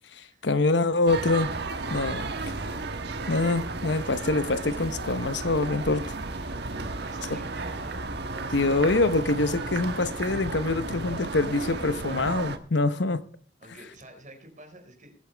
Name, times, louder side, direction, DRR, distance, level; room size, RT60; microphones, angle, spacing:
voice 1, 0.1-1.5 1.9-2.3 3.3-6.1 7.3-7.4 8.5-13.2, left 2 dB, 70° left, 1.0 m, -25 dB
sound 1, 1.1-12.6, right 3 dB, 65° right, 1.4 m, -33 dB
voice 2, 6.7-8.0 13.6-15.2, right 1 dB, 45° right, 4.7 m, -48 dB
21.0 x 9.0 x 3.4 m
head